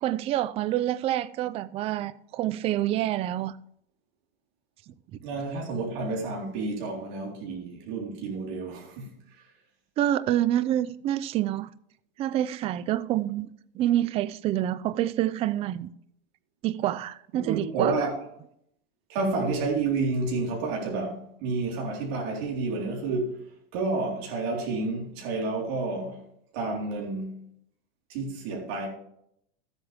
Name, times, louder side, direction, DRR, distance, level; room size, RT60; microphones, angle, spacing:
voice 1, 0.0-3.5 10.0-11.7 12.2-13.5 13.7-15.9 16.6-17.9, right 12 dB, 20° right, 0.4 m, -27 dB
voice 2, 5.2-9.1 17.3-18.1 19.1-23.4 23.7-26.2 26.5-27.3 28.1-28.9, right 3 dB, 55° right, 3.9 m, -30 dB
14.5 x 8.1 x 3.4 m
supercardioid pair, 140°, 30 cm